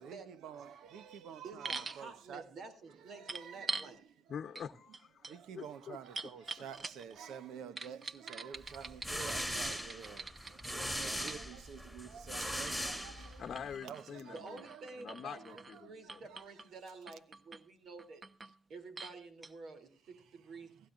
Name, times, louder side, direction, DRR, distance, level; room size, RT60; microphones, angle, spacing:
voice 1, 0.0-2.4 3.1-4.0 5.2-13.4 13.8-16.4, right 8 dB, 80° right, 1.0 m, -49 dB
voice 2, 1.4-4.0 14.3-18.3 18.7-20.8, right 4 dB, 65° right, 3.0 m, -50 dB
sound 1, 1.6-2.0 3.3-3.9 4.5-4.7 4.9-7.2 7.8-11.4 12.3-15.8 16.1-16.7 17.1-17.6 18.0-18.5 19.0-19.1 19.4-19.5, right 3 dB, 30° right, 0.9 m, -45 dB
voice 3, 4.3-6.0 6.6-6.7 13.4-14.6 15.0-16.2, left 7 dB, 55° left, 0.9 m, -45 dB
sound 2, 8.8-13.6, equal, 10° right, 4.3 m, -39 dB
16.5 x 16.0 x 2.5 m
cardioid pair, 90°, 0 cm